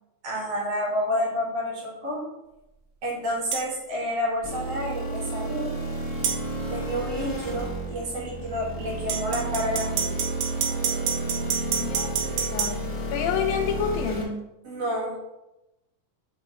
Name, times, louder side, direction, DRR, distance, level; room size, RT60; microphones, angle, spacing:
voice 1, 0.2-2.3 3.0-5.8 6.7-10.2 14.6-15.2, equal, 50° right, -3 dB, 2.4 m, -29 dB
sound 1, 3.5-3.7 6.2-6.4 9.1-12.7, right 7 dB, 70° right, 2.4 m, -27 dB
sound 2, 4.4-14.2, right 2 dB, 45° left, 0.3 m, -31 dB
voice 2, 11.8-14.5, left 7 dB, 80° left, 4 dB, 2.4 m, -29 dB
8.0 x 7.1 x 3.0 m, 0.94 s
omnidirectional pair, 4.4 m